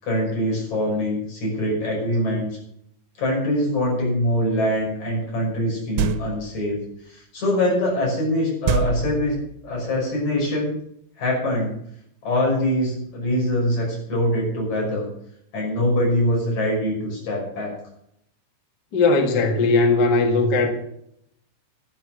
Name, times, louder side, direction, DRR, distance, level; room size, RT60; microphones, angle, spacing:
voice 1, 0.0-2.5 3.2-6.8 7.1-10.7 11.2-11.7 12.2-15.1 15.5-17.7, left 1 dB, 40° left, -2 dB, 6.8 m, -23 dB
sound 1, 6.0-6.6 8.7-9.7, right 7 dB, 90° right, 3.0 m, -25 dB
voice 2, 18.9-20.7, left 3 dB, 70° left, 3 dB, 0.9 m, -18 dB
12.5 x 10.0 x 6.2 m, 0.72 s
omnidirectional pair, 5.0 m